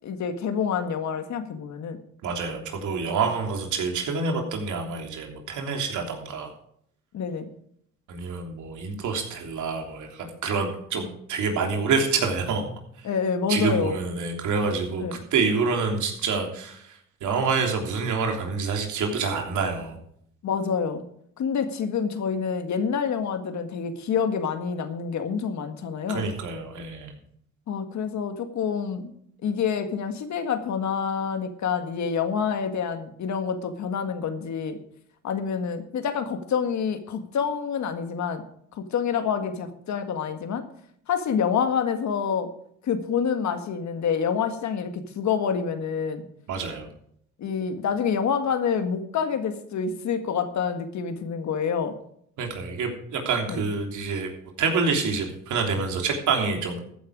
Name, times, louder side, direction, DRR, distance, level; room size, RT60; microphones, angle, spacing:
voice 1, 0.0-2.0 7.1-7.5 13.0-14.0 15.0-15.2 20.4-21.0 21.4-26.3 27.7-29.1 29.4-34.8 35.2-38.4 38.7-40.6 41.1-42.5 42.8-46.2 47.4-52.0 53.5-53.7, left 6 dB, 70° left, 8 dB, 1.8 m, -27 dB
voice 2, 2.2-6.5 8.1-12.7 13.5-20.0 26.1-27.1 46.5-46.9 52.4-54.3 54.6-56.8, right 4 dB, 80° right, 2 dB, 3.3 m, -27 dB
14.5 x 9.5 x 4.9 m, 0.68 s
cardioid pair, 90°, 30 cm